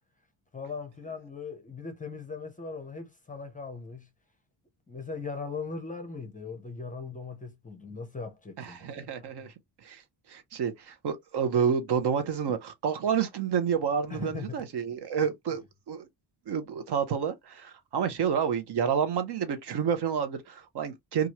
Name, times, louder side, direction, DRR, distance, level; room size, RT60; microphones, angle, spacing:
voice 1, 0.5-4.1 4.9-9.1 14.1-14.6, left 4 dB, 20° left, 0.5 m, -39 dB
voice 2, 8.6-9.5 9.8-10.0 10.3-16.1 16.5-21.3, right 7 dB, 60° right, 0.7 m, -29 dB
3.0 x 2.4 x 2.8 m
wide cardioid pair, 175°, 46 cm